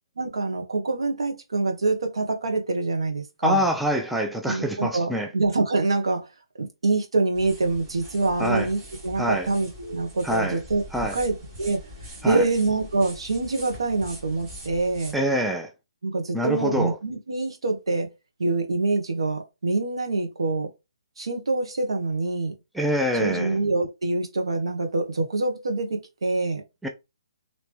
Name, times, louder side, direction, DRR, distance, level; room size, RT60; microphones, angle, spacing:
voice 1, 0.2-3.6 4.5-6.3 6.6-10.8 11.1-11.8 12.2-15.1 16.0-18.1 18.4-20.7 21.2-22.5 23.2-26.6, right 3 dB, 80° right, 1.2 m, -25 dB
voice 2, 3.4-5.3 8.4-8.7 9.2-9.5 10.2-10.6 10.9-11.2 12.2-12.5 15.1-15.7 16.3-16.9 22.7-23.6 26.8-26.9, equal, ahead, 0.4 m, -25 dB
sound 1, 7.3-15.2, equal, 25° right, 1.4 m, -43 dB
3.2 x 2.9 x 3.4 m
hypercardioid pair, 150°, 3 cm